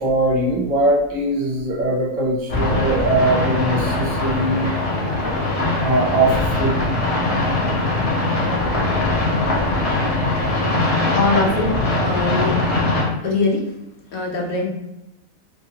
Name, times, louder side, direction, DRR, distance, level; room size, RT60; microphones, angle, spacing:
voice 1, 0.0-4.7 5.8-6.8, right 2 dB, 60° right, -3 dB, 1.0 m, -20 dB
sound 1, 2.5-13.0, left 2 dB, 35° left, 0.5 m, -21 dB
voice 2, 10.8-11.7 12.0-12.6 13.2-13.7 14.1-14.7, left 3 dB, 70° left, 0 dB, 1.0 m, -22 dB
2.7 x 2.6 x 2.7 m, 0.91 s
omnidirectional pair, 1.6 m